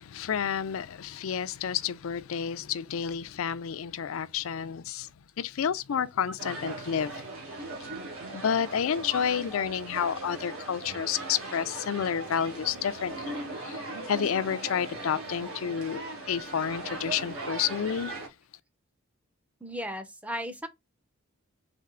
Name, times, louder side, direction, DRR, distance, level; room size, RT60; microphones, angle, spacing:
voice 1, 0.0-5.1 5.4-7.9 8.3-13.8 14.1-18.1, left 8 dB, 75° left, 0.4 m, -30 dB
sound 1, 6.4-18.3, right 2 dB, 70° right, 1.5 m, -39 dB
voice 2, 19.6-20.7, equal, 5° right, 0.5 m, -36 dB
4.3 x 3.3 x 3.7 m
head